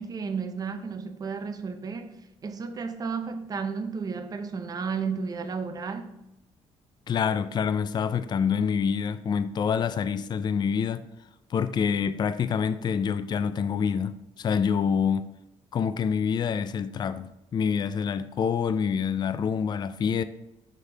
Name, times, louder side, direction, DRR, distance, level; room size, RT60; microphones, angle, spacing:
voice 1, 0.0-6.1, right 5 dB, 30° right, 0.6 m, -33 dB
voice 2, 7.1-11.0 11.5-15.3 15.7-20.2, left 6 dB, 35° left, 0.3 m, -26 dB
6.4 x 5.3 x 3.3 m
cardioid pair, 135°, 13 cm